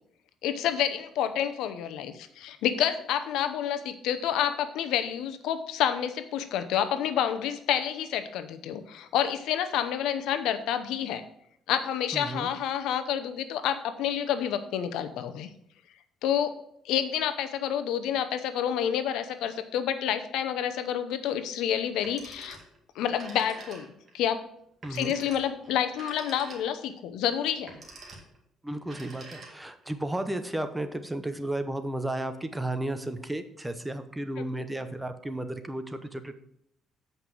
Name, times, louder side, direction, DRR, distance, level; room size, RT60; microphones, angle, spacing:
voice 1, 0.4-11.2 11.7-15.5 16.2-16.5 16.8-22.6 22.9-24.4 24.9-27.7, left 9 dB, 85° left, 10 dB, 0.8 m, -29 dB
voice 2, 12.1-12.5 24.8-25.1 28.6-36.4, right 1 dB, 10° right, 9 dB, 0.7 m, -33 dB
Telephone, 21.9-22.8 23.1-24.1 24.8-26.9 27.6-28.4 28.8-29.8, right 3 dB, 35° right, 2.1 m, -47 dB
7.9 x 5.4 x 6.1 m, 0.73 s
cardioid pair, 120°, 0 cm